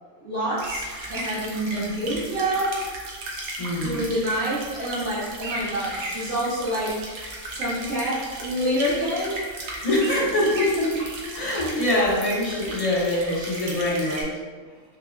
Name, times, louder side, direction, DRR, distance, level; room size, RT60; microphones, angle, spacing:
voice 1, 0.2-2.7 3.8-6.9 7.5-9.4, right 1 dB, 75° right, -13 dB, 1.6 m, -27 dB
sound 1, 0.6-14.2, right 1 dB, 90° right, 1.1 m, -35 dB
voice 2, 3.6-4.0 9.8-14.3, left 1 dB, 30° left, -7 dB, 1.0 m, -24 dB
4.9 x 2.8 x 2.3 m, 1.5 s
omnidirectional pair, 1.3 m